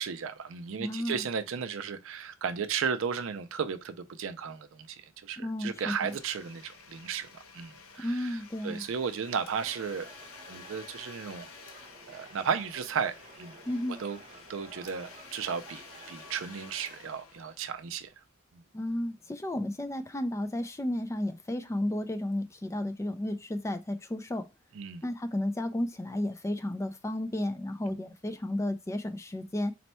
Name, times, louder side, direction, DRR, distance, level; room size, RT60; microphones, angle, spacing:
voice 1, 0.0-8.4 8.6-10.1 10.5-11.5 12.1-13.6 14.0-14.2 14.5-18.1 24.7-25.0, right 6 dB, 65° right, 0.4 m, -34 dB
voice 2, 0.8-1.2 5.4-6.1 8.0-8.8 13.7-14.0 18.7-24.5 25.0-29.7, left 1 dB, 15° left, 0.3 m, -33 dB
Domestic sounds home sounds, 5.6-18.2, left 5 dB, 85° left, 0.6 m, -52 dB
sound 1, 9.3-17.0, right 2 dB, 30° right, 0.9 m, -53 dB
4.1 x 2.2 x 4.2 m
head